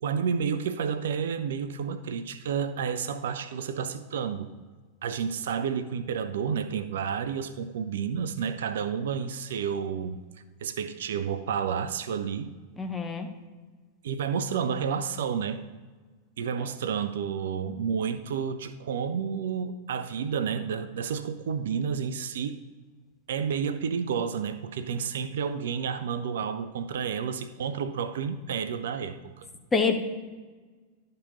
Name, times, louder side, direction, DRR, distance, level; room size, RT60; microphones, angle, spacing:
voice 1, 0.0-4.5 5.0-10.2 10.6-12.5 14.0-15.6 16.4-22.6 23.3-29.5, right 7 dB, 60° right, 0.4 m, -30 dB
voice 2, 12.8-13.3 29.7-30.1, left 4 dB, 15° left, 0.9 m, -26 dB
11.5 x 5.3 x 4.0 m
figure-of-eight pair, 90°, 0 cm